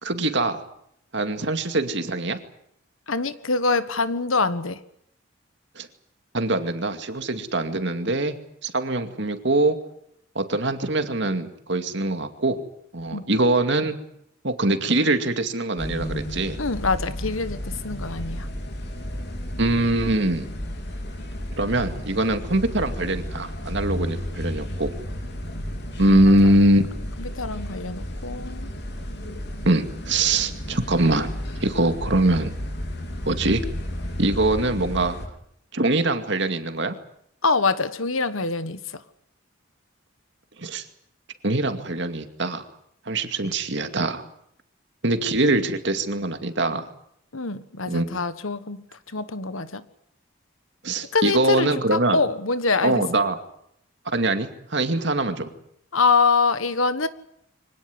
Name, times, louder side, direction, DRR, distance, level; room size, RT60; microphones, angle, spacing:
voice 1, 0.0-0.6 1.1-2.4 5.8-5.9 6.3-8.4 8.6-9.8 10.3-12.6 12.9-14.0 14.4-16.6 19.6-20.5 21.6-25.0 26.0-26.8 29.6-31.3 31.6-32.5 33.3-33.6 34.2-35.2 35.7-36.9 40.6-40.9 41.4-42.6 43.1-44.2 45.0-46.8 47.9-48.1 50.8-52.2 52.8-53.4 54.1-55.5, right 2 dB, 60° right, 8 dB, 2.3 m, -23 dB
voice 2, 3.1-4.8 13.1-13.3 16.6-18.5 26.1-26.2 27.2-28.7 37.4-38.8 47.3-48.8 49.1-49.8 51.1-53.0 55.9-57.1, left 4 dB, 85° left, 13 dB, 1.5 m, -24 dB
sound 1, 15.8-35.3, equal, 55° left, 3.8 m, -33 dB
24.5 x 17.5 x 9.7 m, 0.74 s
head